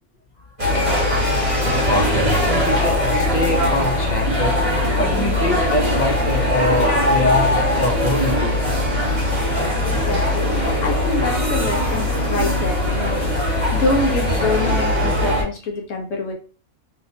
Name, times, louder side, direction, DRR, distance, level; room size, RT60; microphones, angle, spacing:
sound 1, 0.6-15.4, left 1 dB, 25° right, 1.3 m, -20 dB
voice 1, 1.6-4.6 5.0-8.7, left 1 dB, 40° left, 1 dB, 0.7 m, -24 dB
voice 2, 9.8-16.3, left 2 dB, 60° left, 1 dB, 1.3 m, -26 dB
3.3 x 2.9 x 2.7 m, 0.37 s
omnidirectional pair, 1.5 m